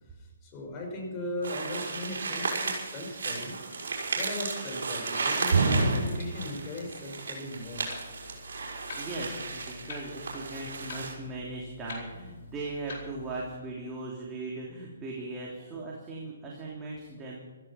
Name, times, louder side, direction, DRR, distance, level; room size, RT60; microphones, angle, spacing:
voice 1, 0.2-3.5 4.1-7.9, left 1 dB, 25° left, 0 dB, 5.9 m, -38 dB
sound 1, 1.4-11.1, right 3 dB, 70° right, 5.3 m, -32 dB
Clock, 7.6-13.5, left 4 dB, 60° left, 4.6 m, -46 dB
voice 2, 9.0-17.4, right 2 dB, 15° right, -4 dB, 3.1 m, -38 dB
16.0 x 14.5 x 5.9 m, 1.4 s
hypercardioid pair, 150°, 0 cm